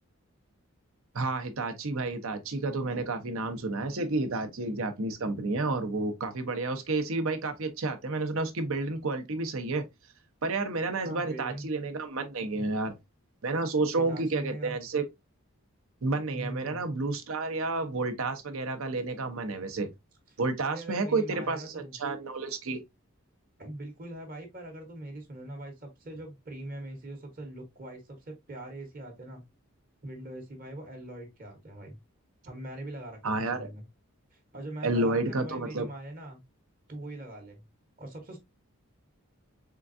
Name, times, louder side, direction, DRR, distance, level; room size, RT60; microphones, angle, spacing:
voice 1, 1.1-9.9 10.4-12.9 13.4-15.0 16.0-19.9 20.4-22.8 33.2-33.7 34.8-35.9, right 3 dB, 70° right, 0.8 m, -30 dB
voice 2, 11.0-11.7 14.0-14.8 16.3-16.8 20.6-22.0 23.6-29.4 30.0-32.0 32.4-33.8 34.3-36.4 36.9-37.7 38.0-38.4, right 1 dB, 40° right, 1.0 m, -42 dB
3.8 x 3.4 x 2.5 m
head